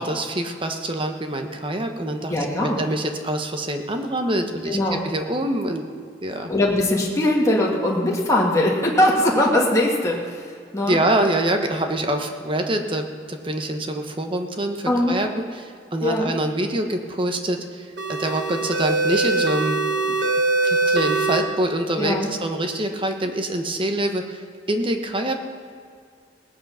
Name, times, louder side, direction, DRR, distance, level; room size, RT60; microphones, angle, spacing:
voice 1, 0.0-2.4 2.6-4.8 5.0-5.8 6.2-6.5 10.9-17.8 18.1-19.8 20.1-20.2 20.6-25.4, right 1 dB, 30° right, 5 dB, 1.1 m, -25 dB
voice 2, 2.3-2.8 4.7-5.0 6.5-11.0 14.9-15.2 16.0-16.3 22.0-22.3, left 1 dB, 20° left, -3 dB, 1.9 m, -21 dB
sound 1, 18.0-21.4, right 3 dB, 70° right, 1.3 m, -22 dB
19.0 x 8.4 x 5.7 m, 2.1 s
head